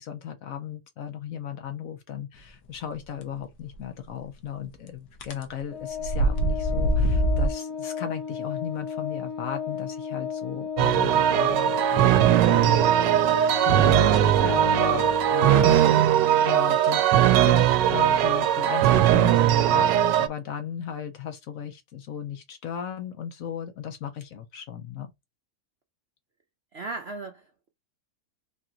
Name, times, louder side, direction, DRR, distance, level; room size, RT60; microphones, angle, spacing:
voice 1, 0.0-17.0 17.4-25.1, left 9 dB, 65° left, 1.0 m, -36 dB
sound 1, 3.7-3.8 5.2-5.4 5.9-7.5, right 1 dB, 90° left, 1.6 m, -23 dB
Organ, 5.7-16.4, left 7 dB, 45° left, 1.4 m, -34 dB
sound 2, 10.8-20.3, right 11 dB, 85° right, 1.2 m, -20 dB
voice 2, 26.7-27.7, right 3 dB, 65° right, 0.6 m, -37 dB
4.1 x 2.9 x 3.7 m
omnidirectional pair, 1.8 m